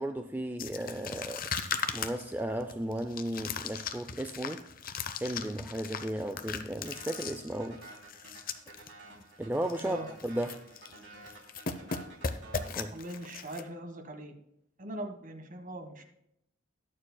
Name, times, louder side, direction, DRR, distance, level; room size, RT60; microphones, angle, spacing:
voice 1, 0.0-1.5 1.9-4.6 5.2-7.8 9.4-10.0 10.2-10.6 12.8-13.0, right 1 dB, 10° right, 6 dB, 0.4 m, -35 dB
sound 1, 0.6-8.9 9.2-9.3 9.6-9.9 10.2-11.0 11.3-13.6, left 6 dB, 45° left, 0.7 m, -38 dB
sound 2, 6.8-13.5, right 2 dB, 65° right, 3.1 m, -51 dB
voice 2, 12.9-14.4 14.8-16.0, right 1 dB, 45° right, 6 dB, 1.4 m, -41 dB
21.5 x 7.2 x 2.2 m, 0.77 s
head